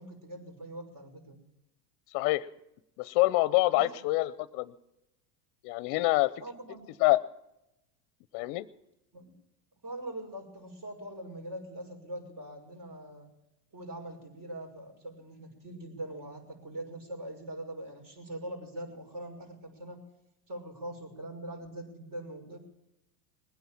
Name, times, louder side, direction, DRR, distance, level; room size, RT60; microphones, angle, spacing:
voice 1, 0.0-1.4 3.7-3.9 6.4-7.0 9.1-9.3 9.8-13.3 13.7-20.0 20.5-22.6, right 1 dB, 40° right, 4 dB, 5.9 m, -42 dB
voice 2, 2.1-2.5 3.0-4.7 5.6-6.3 7.0-7.2 8.3-8.7, left 20 dB, 50° left, 17 dB, 0.8 m, -26 dB
21.0 x 9.4 x 7.2 m, 0.88 s
hypercardioid pair, 100°, 50 cm